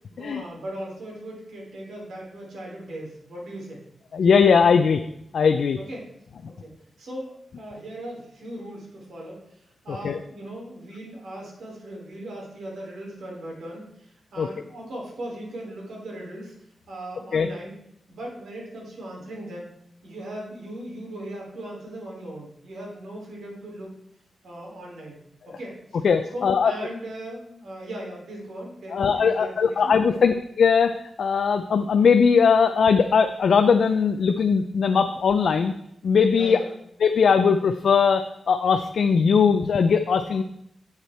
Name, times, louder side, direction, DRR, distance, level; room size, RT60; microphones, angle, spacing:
voice 1, 0.1-3.8 5.8-6.1 6.5-16.5 16.9-17.7 18.1-19.7 20.0-23.9 24.4-25.2 25.4-26.0 26.3-30.2 36.3-36.7, right 1 dB, 85° right, -2 dB, 3.4 m, -38 dB
voice 2, 4.1-5.0 5.3-5.8 10.0-10.2 14.4-14.5 17.3-17.5 26.0-26.7 28.9-35.7 36.0-36.6 37.0-40.4, left 6 dB, 65° left, 7 dB, 0.5 m, -20 dB
8.2 x 8.1 x 4.4 m, 0.76 s
wide cardioid pair, 150°, 0 cm